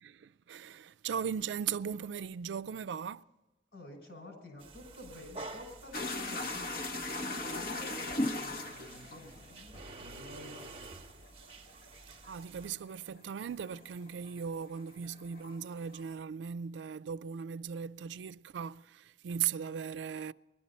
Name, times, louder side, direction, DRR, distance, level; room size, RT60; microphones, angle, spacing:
voice 1, 0.0-3.2 12.3-20.3, right 7 dB, 90° right, 0.4 m, -38 dB
voice 2, 3.7-6.7 7.2-9.7 10.0-10.7, left 2 dB, 75° left, 6.1 m, -50 dB
sound 1, 4.6-12.8, right 3 dB, 30° right, 0.7 m, -50 dB
sound 2, 5.9-14.5 14.7-16.1, left 2 dB, 55° left, 1.0 m, -38 dB
21.0 x 12.0 x 4.2 m
head